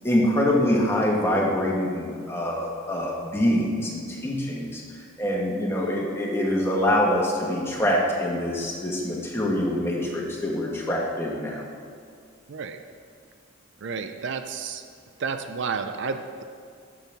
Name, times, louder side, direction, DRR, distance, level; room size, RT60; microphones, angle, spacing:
voice 1, 0.0-4.8 5.2-11.6, left 1 dB, 10° left, -3 dB, 1.4 m, -25 dB
voice 2, 12.5-12.8 13.8-14.8 15.2-16.4, right 5 dB, 65° right, 8 dB, 0.5 m, -31 dB
11.5 x 7.3 x 3.5 m, 2.3 s
head